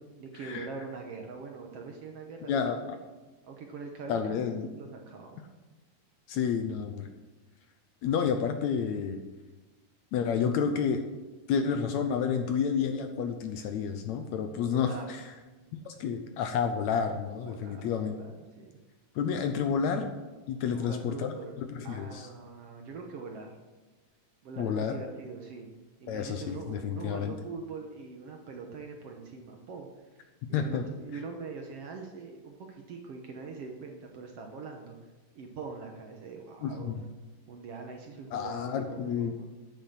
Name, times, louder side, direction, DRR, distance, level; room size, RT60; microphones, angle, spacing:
voice 1, 0.2-2.8 3.4-5.4 14.7-15.1 17.4-18.8 19.4-19.5 20.7-21.6 21.8-23.6 24.4-35.0 35.3-37.0 37.5-39.5, right 4 dB, 65° right, 2 dB, 1.7 m, -43 dB
voice 2, 2.4-3.0 4.1-4.7 6.3-7.1 8.0-9.2 10.1-11.0 11.5-15.2 15.9-18.2 19.2-20.1 20.5-22.3 24.6-24.9 26.1-27.4 30.5-30.9 36.6-37.0 38.3-39.3, left 7 dB, 75° left, 6 dB, 1.8 m, -30 dB
10.0 x 6.9 x 7.6 m, 1.2 s
omnidirectional pair, 3.7 m